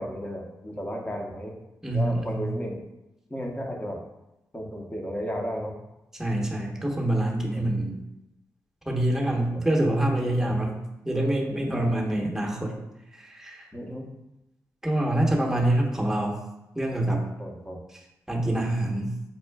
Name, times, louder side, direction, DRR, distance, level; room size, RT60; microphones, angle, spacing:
voice 1, 0.0-1.6 1.9-2.8 3.3-4.0 4.5-5.7 7.5-7.7 9.5-9.6 10.4-10.6 11.7-11.9 13.7-14.1 17.4-17.8, equal, 20° left, 1 dB, 0.9 m, -34 dB
voice 2, 1.8-2.5 6.1-8.0 8.9-10.8 11.0-12.7 13.1-13.7 14.8-16.4 16.7-17.2 18.3-19.1, right 1 dB, 5° right, -1 dB, 1.0 m, -26 dB
5.5 x 2.3 x 2.3 m, 0.95 s
supercardioid pair, 40°, 7 cm